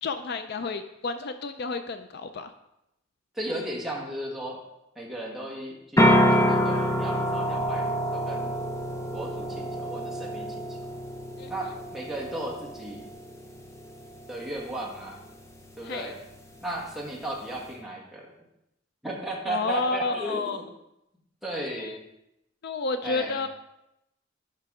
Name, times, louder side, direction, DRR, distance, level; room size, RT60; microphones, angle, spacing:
voice 1, 0.0-2.5 11.4-11.8 15.8-16.1 19.5-20.6 21.5-22.0 22.6-23.5, left 3 dB, 55° left, 9 dB, 0.4 m, -31 dB
voice 2, 3.3-4.6 4.9-8.5 9.1-10.7 11.5-13.0 14.3-15.2 15.8-16.1 16.6-18.3 19.0-20.7 21.4-22.0 23.0-23.4, right 1 dB, ahead, -3 dB, 1.5 m, -35 dB
sound 1, 6.0-17.7, equal, 15° left, 0.7 m, -28 dB
11.0 x 3.9 x 4.8 m, 0.85 s
head